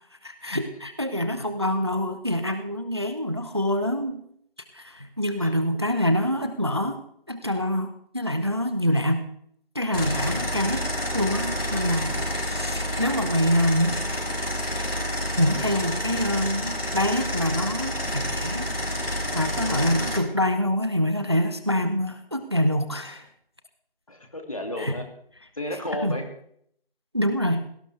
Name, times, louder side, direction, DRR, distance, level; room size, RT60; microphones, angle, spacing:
voice 1, 0.2-4.2 4.7-7.0 7.3-9.3 9.7-10.8 11.1-14.0 15.4-23.3 24.8-25.0 26.0-26.2 27.1-27.6, equal, 30° right, 9 dB, 0.8 m, -26 dB
sound 1, 9.9-20.2, equal, 80° left, 4.8 m, -29 dB
voice 2, 19.6-20.0 24.1-25.0 25.6-26.2, left 1 dB, 35° left, 4 dB, 2.4 m, -33 dB
23.0 x 17.5 x 3.3 m, 0.67 s
figure-of-eight pair, 170°, 29 cm